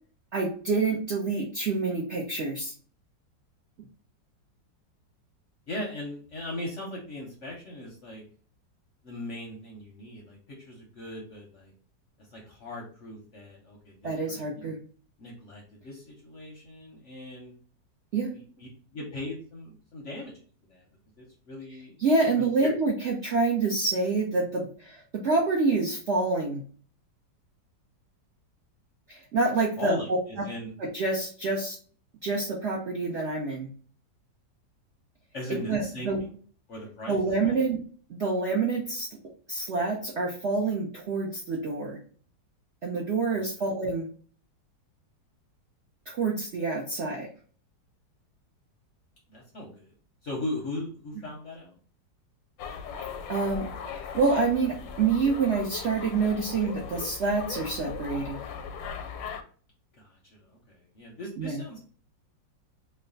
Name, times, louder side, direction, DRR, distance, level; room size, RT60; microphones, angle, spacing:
voice 1, 0.3-2.7 14.0-14.8 18.1-18.3 22.0-26.6 29.1-30.0 30.9-31.7 32.2-33.7 35.7-36.2 37.1-37.8 38.2-39.1 39.5-42.0 42.8-44.1 46.1-47.3 53.3-53.7 53.9-58.4 61.4-61.6, right 3 dB, 65° right, -2 dB, 0.6 m, -27 dB
voice 2, 5.7-8.2 9.0-11.7 12.3-14.7 15.2-17.5 18.3-20.4 20.7-20.8 21.2-21.9 22.4-22.7 29.8-30.7 35.3-36.3 36.7-37.2 37.4-37.7 43.3-43.4 49.3-49.9 50.2-51.7 60.0-61.8, left 2 dB, 60° left, -2 dB, 0.8 m, -39 dB
sound 1, 52.6-59.4, left 6 dB, 85° left, 1.3 m, -38 dB
3.2 x 2.1 x 3.8 m, 0.43 s
omnidirectional pair, 2.0 m